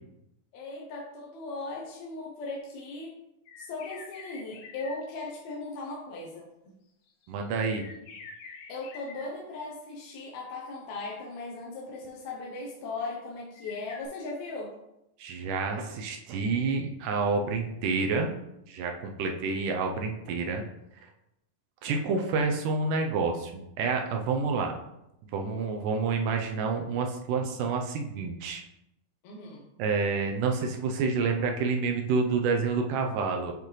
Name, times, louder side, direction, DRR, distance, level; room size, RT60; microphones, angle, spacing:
voice 1, 0.5-3.1 3.6-6.8 8.7-14.7 29.2-29.7, left 3 dB, 70° left, -2 dB, 1.8 m, -38 dB
sound 1, 3.5-5.3 7.1-9.3 13.5-14.1, left 4 dB, 90° left, 2.8 m, -46 dB
voice 2, 7.3-7.9 15.2-18.3 18.7-20.6 21.8-24.8 25.3-28.6 29.8-33.5, right 4 dB, 75° right, 3 dB, 2.0 m, -28 dB
8.0 x 5.1 x 3.1 m, 0.87 s
omnidirectional pair, 4.1 m